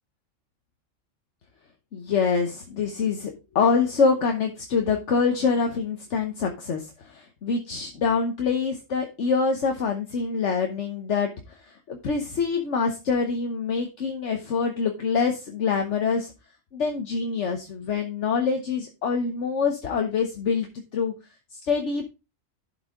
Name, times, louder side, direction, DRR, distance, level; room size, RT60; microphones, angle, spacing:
voice 1, 1.9-16.3 16.7-21.1 21.5-22.0, left 5 dB, 70° left, 3 dB, 1.3 m, -25 dB
11.5 x 5.4 x 3.7 m, 0.26 s
omnidirectional pair, 1.3 m